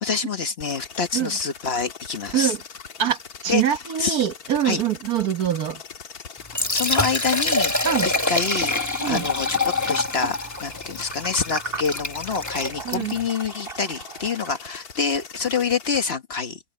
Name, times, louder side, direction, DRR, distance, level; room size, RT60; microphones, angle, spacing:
voice 1, 0.0-2.5 3.5-3.6 4.0-4.3 4.6-4.8 6.7-16.6, left 5 dB, 45° left, 1.3 m, -27 dB
sound 1, 0.6-16.1, left 6 dB, 85° left, 2.0 m, -41 dB
voice 2, 3.0-5.8 7.8-8.1 9.0-9.2 12.8-13.2, right 10 dB, 75° right, 1.6 m, -24 dB
Liquid, 6.4-13.3, left 2 dB, 15° left, 1.1 m, -26 dB
sound 2, 6.9-14.6, right 4 dB, 40° right, 2.3 m, -39 dB
omnidirectional pair, 1.6 m